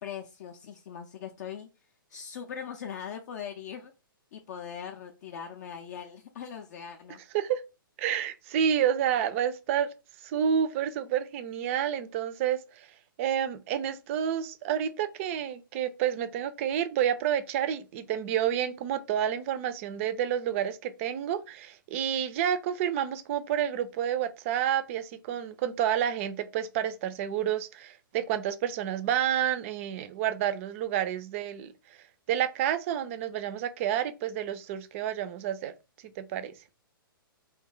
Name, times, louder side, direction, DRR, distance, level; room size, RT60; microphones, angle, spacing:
voice 1, 0.0-1.7 2.1-3.9 4.3-7.2, left 8 dB, 45° left, 0.4 m, -40 dB
voice 2, 8.0-9.9 10.2-12.9 13.2-31.7 32.3-35.7 36.2-36.5, right 9 dB, 35° right, 0.4 m, -29 dB
2.6 x 2.2 x 3.7 m
figure-of-eight pair, 120°, 12 cm